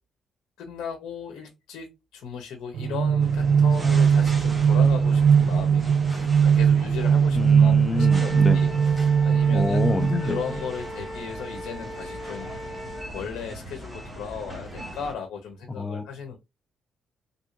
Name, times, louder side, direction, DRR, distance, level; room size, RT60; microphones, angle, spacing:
voice 1, 0.6-1.9 2.1-5.8 6.1-8.7 9.0-9.8 10.2-12.5 13.1-16.4, left 6 dB, 80° left, 0.9 m, -36 dB
sound 1, 2.7-10.6, right 7 dB, 70° right, 0.4 m, -20 dB
sound 2, 3.2-15.1, equal, 15° right, 1.3 m, -40 dB
voice 2, 7.3-8.7 9.5-10.4 15.7-16.1, left 3 dB, 30° left, 0.5 m, -27 dB
Wind instrument woodwind instrument, 8.0-13.1, equal, 50° right, 2.0 m, -38 dB
3.5 x 2.7 x 2.5 m
cardioid pair, 90°, 0 cm